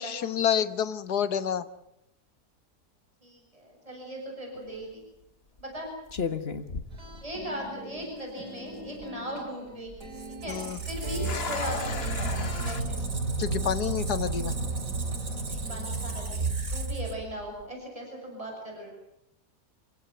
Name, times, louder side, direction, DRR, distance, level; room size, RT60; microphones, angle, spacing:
voice 1, 0.0-1.7 10.5-10.8 13.4-14.5, left 8 dB, 80° left, 13 dB, 1.8 m, -28 dB
voice 2, 3.2-5.0 5.6-5.9 7.2-9.9 10.4-12.4 12.6-13.0 15.4-18.9, equal, 20° right, 0 dB, 7.8 m, -38 dB
sound 1, 4.5-4.8 5.6-5.8 6.1-7.7 8.0-8.1 8.7-9.1 10.8-12.8, left 5 dB, 40° left, 1.6 m, -36 dB
sound 2, 6.9-12.7, left 1 dB, 75° right, 5.2 m, -44 dB
Squeak, 9.9-17.6, right 3 dB, 55° right, 2.9 m, -32 dB
28.0 x 17.0 x 9.4 m, 0.80 s
omnidirectional pair, 1.7 m